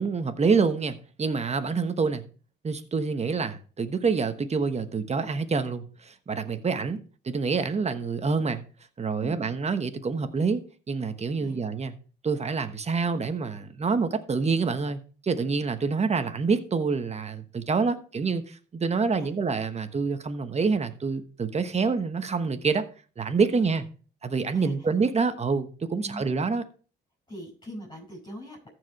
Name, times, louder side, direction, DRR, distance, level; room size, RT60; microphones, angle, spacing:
voice 1, 0.0-2.2 2.6-7.0 7.2-8.6 9.0-10.6 10.9-11.9 12.2-22.8 23.2-23.9 24.2-26.6, right 4 dB, 35° right, 1.2 m, -27 dB
voice 2, 26.0-26.3 27.3-28.7, equal, 25° left, 5.8 m, -41 dB
14.0 x 4.9 x 4.2 m
cardioid pair, 90°, 20 cm